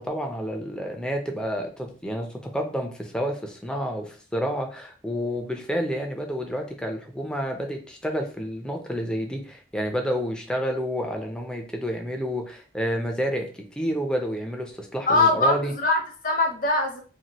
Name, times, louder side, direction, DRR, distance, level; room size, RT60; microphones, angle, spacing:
voice 1, 0.0-13.5 13.8-15.7, equal, 5° left, 3 dB, 0.4 m, -29 dB
voice 2, 15.1-17.0, left 2 dB, 50° left, 2 dB, 0.7 m, -22 dB
2.7 x 2.5 x 2.9 m, 0.39 s
head